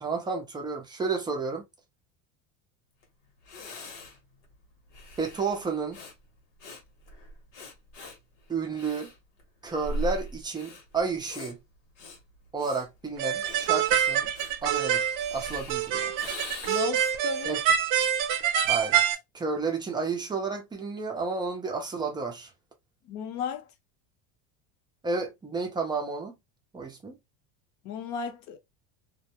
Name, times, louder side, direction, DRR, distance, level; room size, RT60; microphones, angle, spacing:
voice 1, 0.0-1.7 5.2-6.0 8.5-9.1 9.6-11.6 12.5-14.3 14.6-16.1 17.4-17.6 18.7-22.5 25.0-26.3 26.7-27.2, right 4 dB, 10° right, 0.5 m, -31 dB
Breathing, 3.0-3.1 3.4-17.1, equal, 75° left, 1.1 m, -41 dB
sound 1, 13.2-19.2, right 9 dB, 60° right, 0.6 m, -26 dB
voice 2, 16.7-17.5 23.0-23.7 27.8-28.6, left 7 dB, 50° left, 0.7 m, -34 dB
2.2 x 2.1 x 2.8 m
supercardioid pair, 140°, 37 cm